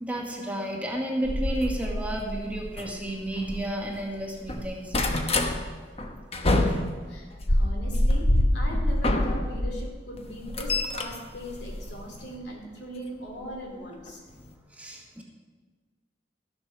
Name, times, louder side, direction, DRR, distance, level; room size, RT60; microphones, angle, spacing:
voice 1, 0.0-4.9 14.8-15.2, right 1 dB, 10° right, 0 dB, 1.2 m, -32 dB
sound 1, 1.2-4.0 4.3-5.5 6.0-9.8 10.2-12.4 13.4-13.6 14.1-14.2 14.4-14.5, left 1 dB, 30° left, 0.9 m, -26 dB
voice 2, 7.1-8.3 8.5-14.2, equal, 65° left, 0 dB, 2.7 m, -39 dB
13.0 x 7.7 x 5.9 m, 1.4 s
head